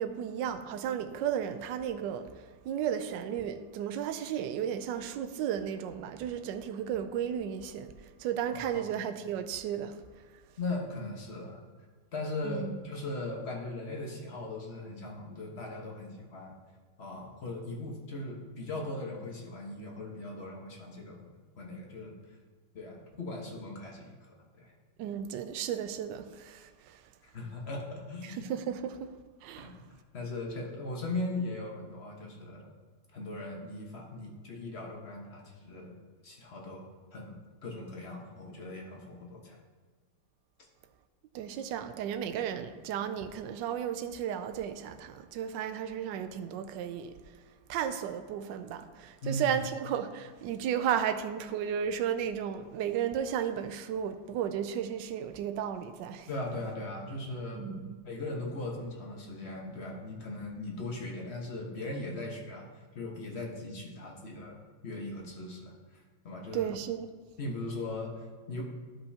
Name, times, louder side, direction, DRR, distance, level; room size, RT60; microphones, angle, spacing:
voice 1, 0.0-7.9 8.2-10.0 12.4-12.8 25.0-27.0 28.2-29.1 29.4-29.7 41.3-47.2 47.7-56.3 57.6-57.8 66.5-67.1, right 9 dB, 80° right, 1.2 m, -34 dB
voice 2, 10.6-11.6 12.1-16.6 17.0-21.3 21.6-22.2 22.7-24.7 27.3-28.4 29.6-29.7 30.1-32.7 33.1-36.0 36.2-37.4 37.6-39.6 49.2-49.6 56.3-57.7 58.0-62.7 62.9-66.7 67.4-68.6, left 2 dB, 40° left, 1.3 m, -39 dB
13.0 x 5.2 x 2.8 m
omnidirectional pair, 2.0 m